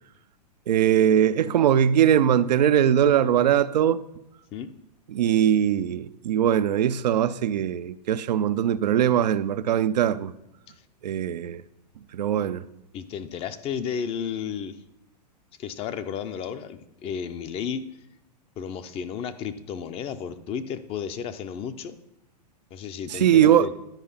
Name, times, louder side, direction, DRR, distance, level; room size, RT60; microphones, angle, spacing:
voice 1, 0.7-4.0 5.1-10.3 11.0-11.6 12.1-12.6 23.1-23.7, right 10 dB, 80° right, 0.5 m, -21 dB
voice 2, 12.9-14.8 15.6-17.8 18.6-22.0 22.7-23.7, left 7 dB, 25° left, 0.6 m, -33 dB
10.5 x 4.8 x 5.5 m
hypercardioid pair, 125°, 21 cm